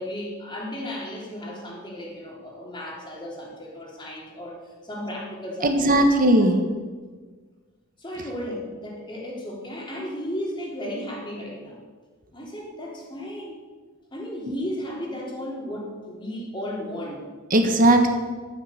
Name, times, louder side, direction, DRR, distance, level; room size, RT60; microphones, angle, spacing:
voice 1, 0.0-4.6 4.8-6.1 6.4-6.5 8.0-11.7 12.3-13.6 14.1-17.3, left 1 dB, 25° left, -3 dB, 3.3 m, -34 dB
voice 2, 5.6-6.6 14.4-14.5 17.5-18.1, right 1 dB, 45° right, 5 dB, 1.5 m, -18 dB
12.0 x 8.9 x 6.6 m, 1.4 s
head